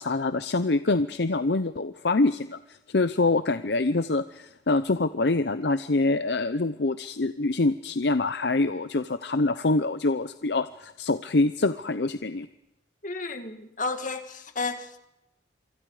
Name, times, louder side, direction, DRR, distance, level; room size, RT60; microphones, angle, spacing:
voice 1, 0.0-12.5, left 2 dB, 65° left, 12 dB, 0.7 m, -25 dB
voice 2, 13.0-15.0, left 3 dB, 45° left, 7 dB, 2.2 m, -32 dB
27.5 x 24.5 x 5.0 m, 0.88 s
head